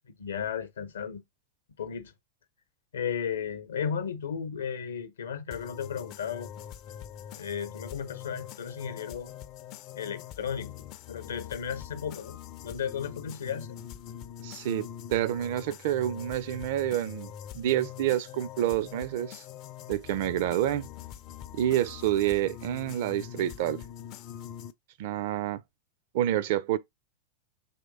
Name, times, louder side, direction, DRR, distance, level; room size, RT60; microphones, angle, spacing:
voice 1, 0.2-1.2 1.8-2.1 2.9-6.5 7.4-9.3 10.0-10.7 11.1-12.4 12.6-13.7, left 7 dB, 65° left, 0.8 m, -34 dB
sound 1, 5.5-24.7, left 10 dB, 40° left, 0.4 m, -44 dB
voice 2, 14.4-19.4 19.9-20.9 21.5-23.8 25.0-25.6 26.1-26.8, right 12 dB, 50° right, 0.4 m, -28 dB
4.2 x 3.2 x 3.8 m
figure-of-eight pair, 90°, 0 cm